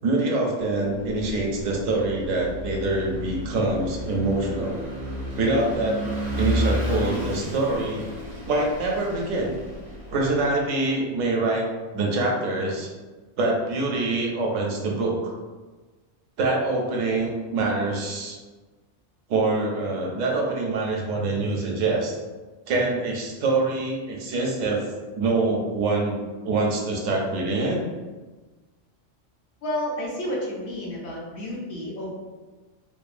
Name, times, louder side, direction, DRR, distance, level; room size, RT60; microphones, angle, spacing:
voice 1, 0.0-4.8 5.4-6.0 6.4-8.1 8.4-9.6 10.1-11.6 11.9-12.9 13.4-15.3 16.4-18.4 19.3-22.2 22.7-24.8 25.1-26.2 26.4-27.8, right 2 dB, 80° right, 0 dB, 0.9 m, -25 dB
Vehicle / Engine, 0.8-10.5, equal, 50° right, 0.5 m, -32 dB
voice 2, 29.6-32.1, left 1 dB, 60° left, -4 dB, 0.9 m, -30 dB
2.8 x 2.1 x 2.4 m, 1.3 s
omnidirectional pair, 1.3 m